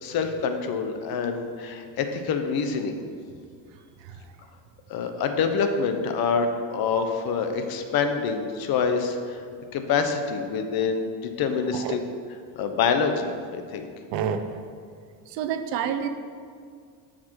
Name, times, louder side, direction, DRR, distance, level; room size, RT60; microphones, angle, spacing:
voice 1, 0.0-3.0 4.9-9.4 9.7-12.0 12.6-13.9, left 5 dB, 55° left, 6 dB, 0.9 m, -26 dB
voice 2, 3.7-4.3 11.7-12.0 14.1-14.5 15.3-16.1, right 8 dB, 80° right, 8 dB, 0.9 m, -29 dB
13.0 x 5.1 x 4.6 m, 2.2 s
cardioid pair, 165°, 44 cm